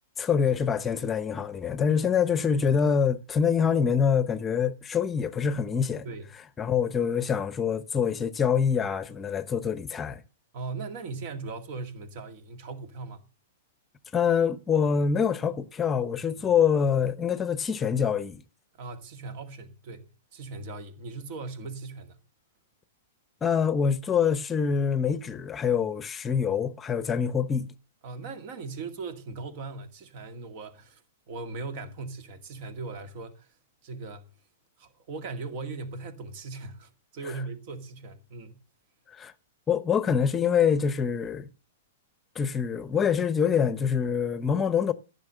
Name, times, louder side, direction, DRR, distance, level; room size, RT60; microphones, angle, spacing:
voice 1, 0.2-6.1 6.6-10.2 14.1-18.4 23.4-27.7 39.1-39.3 39.7-41.5 42.3-44.9, left 7 dB, 20° left, 0.9 m, -25 dB
voice 2, 10.5-13.2 16.3-16.4 18.7-22.2 28.0-31.0 31.3-33.5 33.8-34.3 34.8-38.6, right 3 dB, 50° right, 2.1 m, -39 dB
14.5 x 6.9 x 6.8 m
figure-of-eight pair, 105°, 0 cm